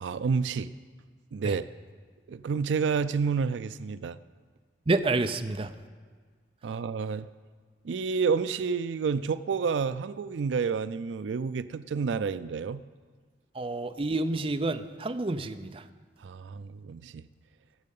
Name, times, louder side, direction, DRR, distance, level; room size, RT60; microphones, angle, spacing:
voice 1, 0.0-0.7 1.3-1.7 2.3-4.2 6.6-7.3 7.8-12.8 16.2-17.3, right 5 dB, 85° right, 14 dB, 0.4 m, -29 dB
voice 2, 4.9-5.7 13.5-15.8, right 2 dB, 30° right, 8 dB, 0.5 m, -29 dB
20.0 x 7.6 x 5.4 m, 1.5 s
head